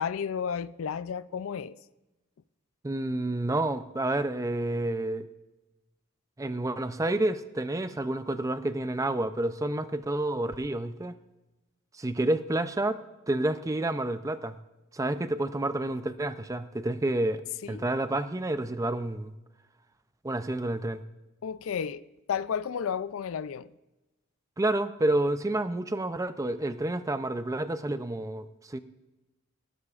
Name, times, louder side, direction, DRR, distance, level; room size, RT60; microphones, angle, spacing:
voice 1, 0.0-1.8 17.6-17.8 21.4-22.0 22.3-23.7, left 7 dB, 70° left, 0.4 m, -32 dB
voice 2, 2.8-5.3 6.4-11.1 12.0-13.0 13.3-14.6 14.9-17.4 17.7-19.3 20.2-21.0 24.6-28.8, right 1 dB, 15° right, 0.5 m, -29 dB
19.0 x 14.5 x 2.5 m
head